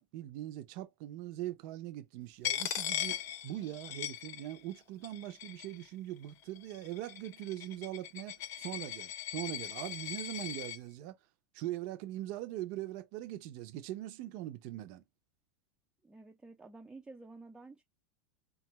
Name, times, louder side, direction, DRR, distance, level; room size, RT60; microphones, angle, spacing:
voice 1, 0.0-3.2 3.4-11.2 11.5-15.0, right 14 dB, 55° right, 0.6 m, -41 dB
Coin (dropping), 2.4-4.8 5.0-5.9 6.6-10.8, left 11 dB, 45° left, 0.4 m, -39 dB
voice 2, 16.0-17.8, right 3 dB, 10° right, 0.5 m, -51 dB
2.6 x 2.3 x 3.0 m
hypercardioid pair, 105°, 6 cm